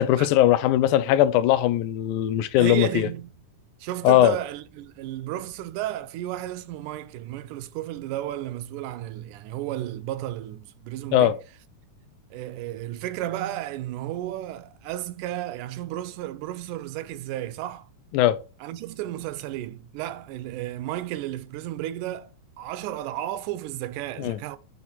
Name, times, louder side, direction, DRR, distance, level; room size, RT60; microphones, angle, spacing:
voice 1, 0.0-3.1 4.0-4.4 11.1-11.4 18.1-18.4 24.2-24.4, left 13 dB, 85° left, 2.0 m, -20 dB
voice 2, 2.6-3.3 3.8-11.4 12.3-17.9 18.6-24.6, right 13 dB, 80° right, 2.1 m, -33 dB
7.9 x 2.9 x 4.3 m
omnidirectional pair, 3.6 m